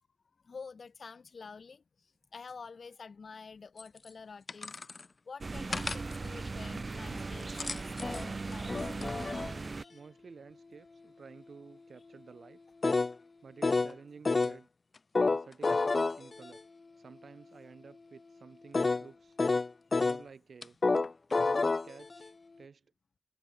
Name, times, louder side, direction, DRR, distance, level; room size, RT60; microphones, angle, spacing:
voice 1, 0.4-4.8 5.3-8.9 9.6-10.1, left 5 dB, 70° left, 1.8 m, -49 dB
sound 1, 3.8-3.9 4.5-5.0 5.7-6.2 7.4-9.5 12.8-13.1 13.6-13.9 14.2-14.6 15.1-16.6 18.7-19.1 19.4-20.2 20.6-22.3, left 3 dB, 50° left, 0.4 m, -29 dB
sound 2, 5.4-9.8, right 3 dB, 50° right, 0.8 m, -38 dB
voice 2, 9.9-12.6 13.4-14.7 15.2-16.6 17.0-19.4 20.0-20.8 21.4-22.8, right 5 dB, 70° right, 1.3 m, -52 dB
cardioid pair, 45°, 0 cm